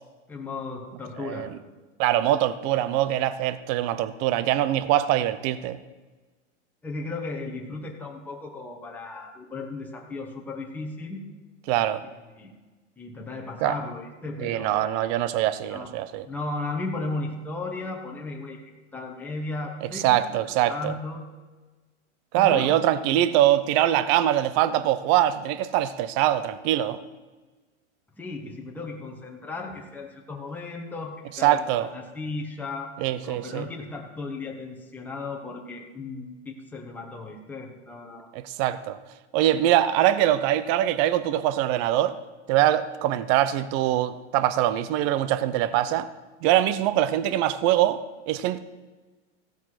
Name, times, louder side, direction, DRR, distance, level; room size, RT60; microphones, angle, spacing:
voice 1, 0.3-1.5 6.8-11.2 12.0-12.5 13.0-15.0 15.7-15.9 16.3-18.6 18.9-21.2 22.3-22.8 28.2-32.9 33.2-38.3, left 3 dB, 5° left, 1.2 m, -35 dB
voice 2, 2.0-5.8 11.7-12.0 13.6-13.7 14.4-16.2 20.0-20.9 22.3-27.0 31.4-31.9 33.0-33.7 38.3-39.0 39.3-42.2 42.5-46.1 46.4-48.0 48.3-48.6, right 12 dB, 35° right, 0.7 m, -23 dB
15.5 x 7.3 x 5.9 m
supercardioid pair, 140°, 36 cm